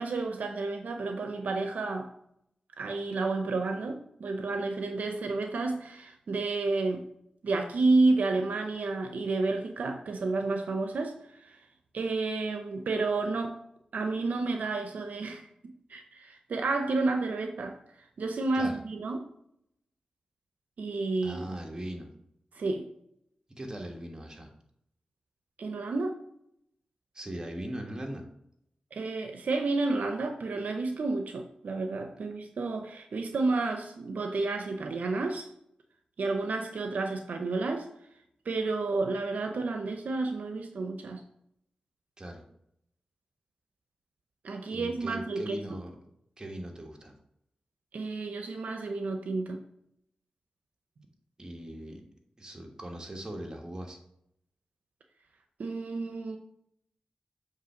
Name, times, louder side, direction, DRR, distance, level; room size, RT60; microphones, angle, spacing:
voice 1, 0.0-2.1 2.8-7.0 7.4-11.6 11.9-13.6 13.9-17.8 18.2-19.2 20.8-21.5 22.5-22.9 25.6-26.2 28.9-35.5 36.2-37.9 38.5-41.2 44.4-45.8 47.9-49.6 55.6-56.4, right 3 dB, 80° right, 5 dB, 0.6 m, -30 dB
voice 2, 21.2-22.1 23.5-24.5 27.1-28.2 42.2-42.4 44.7-45.9 46.4-47.1 51.4-52.0 52.4-54.0, right 1 dB, 30° right, 1 dB, 1.5 m, -39 dB
7.4 x 3.2 x 5.8 m, 0.74 s
cardioid pair, 60°, 3 cm